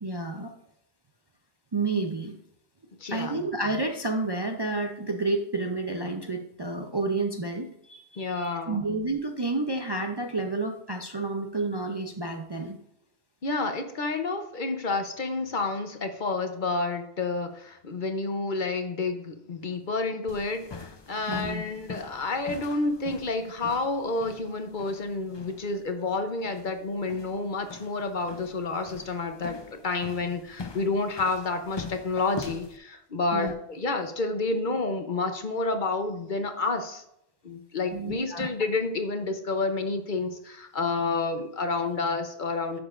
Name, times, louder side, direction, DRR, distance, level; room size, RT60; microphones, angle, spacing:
voice 1, 0.0-0.5 1.7-2.4 3.1-12.8 21.3-21.6 33.3-33.5 37.9-38.5, right 2 dB, 30° right, 3 dB, 0.5 m, -30 dB
voice 2, 3.0-3.4 8.2-8.8 13.4-37.0 37.4-42.8, left 3 dB, 50° left, 7 dB, 0.9 m, -29 dB
sound 1, 20.3-32.8, left 4 dB, 35° left, 0.5 m, -43 dB
10.5 x 7.1 x 2.5 m, 0.75 s
omnidirectional pair, 1.1 m